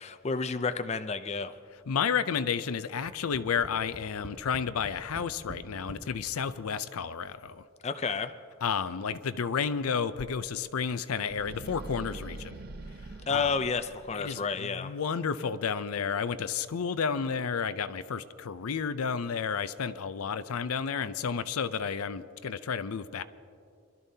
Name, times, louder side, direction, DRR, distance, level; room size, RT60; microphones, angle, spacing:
voice 1, 0.0-1.5 7.8-8.3 13.3-14.9, left 4 dB, 30° left, 9 dB, 0.4 m, -30 dB
voice 2, 1.9-7.6 8.6-12.5 13.3-13.6 14.1-23.2, left 6 dB, 85° left, 13 dB, 0.5 m, -31 dB
Tap, 3.1-6.1 6.9-7.0 7.3-7.4, right 2 dB, 85° right, 1.4 m, -46 dB
sound 1, 11.3-14.5, right 2 dB, 45° right, 0.7 m, -44 dB
25.5 x 12.0 x 2.8 m, 2.4 s
head